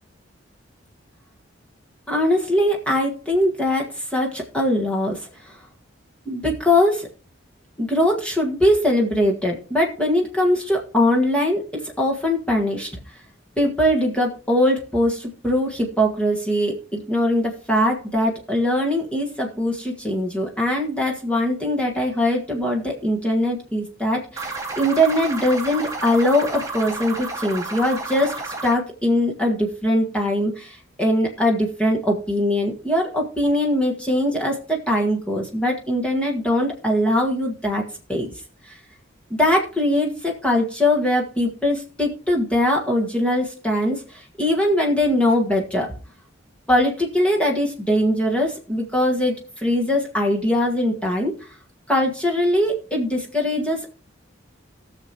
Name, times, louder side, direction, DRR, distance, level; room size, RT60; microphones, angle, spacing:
voice 1, 2.1-5.6 6.2-7.1 7.8-13.0 13.6-37.8 38.1-38.3 38.7-38.8 39.4-45.9 46.7-51.3 51.9-53.9, left 1 dB, 5° left, -1 dB, 1.5 m, -21 dB
sound 1, 24.4-28.8, right 3 dB, 15° right, 1.3 m, -31 dB
19.5 x 6.7 x 2.9 m, 0.37 s
head